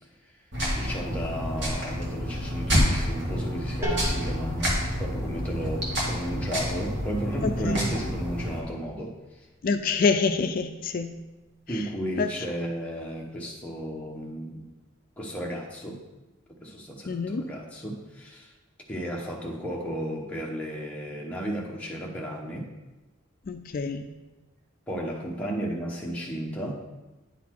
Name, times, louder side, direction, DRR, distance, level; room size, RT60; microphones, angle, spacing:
sound 1, 0.5-8.6, equal, 55° right, 1.8 m, -28 dB
voice 1, 0.7-9.1 11.7-14.7 15.2-16.0 16.6-18.5 18.9-22.7 24.9-26.7, right 1 dB, 5° left, -2 dB, 0.9 m, -34 dB
voice 2, 7.4-7.8 9.6-11.2 11.7-11.8 12.2-12.3 17.1-17.4 23.5-24.1, left 4 dB, 45° left, 8 dB, 0.3 m, -26 dB
sound 2, 9.3-9.4, equal, 15° right, 1.1 m, -39 dB
9.4 x 4.1 x 4.5 m, 1.1 s
head